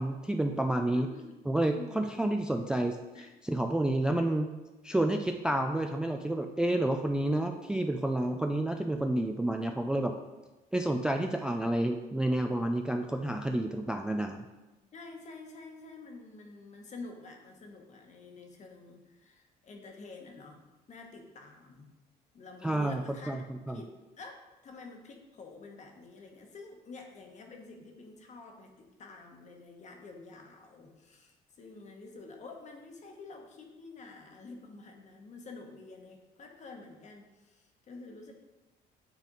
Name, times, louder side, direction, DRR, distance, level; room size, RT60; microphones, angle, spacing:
voice 1, 0.0-1.1 1.5-3.0 3.4-4.5 4.8-10.1 10.7-14.4 22.6-23.4 23.7-23.8, right 1 dB, 5° right, 4 dB, 0.3 m, -29 dB
voice 2, 0.9-1.4 1.7-2.1 3.1-3.3 14.9-20.6 20.9-21.9 22.3-23.4 23.7-23.9 24.2-38.3, left 3 dB, 45° left, 3 dB, 1.2 m, -48 dB
9.0 x 3.5 x 3.8 m, 1.1 s
cardioid pair, 110°, 17 cm